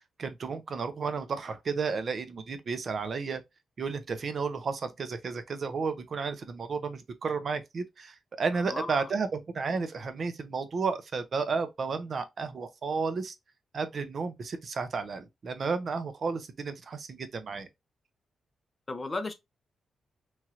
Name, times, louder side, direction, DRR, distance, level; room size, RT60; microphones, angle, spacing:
voice 1, 0.2-3.4 3.8-13.3 13.7-17.7, right 5 dB, 45° right, 0.4 m, -32 dB
voice 2, 8.5-9.1 18.9-19.3, left 3 dB, 25° left, 0.4 m, -35 dB
3.0 x 2.4 x 2.8 m
wide cardioid pair, 155°, 0 cm